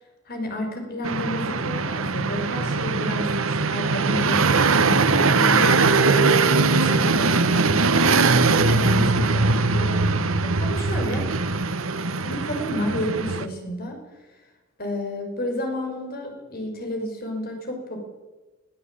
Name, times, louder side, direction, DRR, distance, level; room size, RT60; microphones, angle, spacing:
voice 1, 0.3-4.5 4.8-6.3 6.6-11.3 12.2-14.0 14.8-18.0, left 1 dB, 50° left, 3 dB, 5.7 m, -31 dB
sound 1, 1.0-13.5, right 3 dB, 80° right, 1.3 m, -21 dB
21.5 x 16.0 x 8.6 m, 1.2 s
head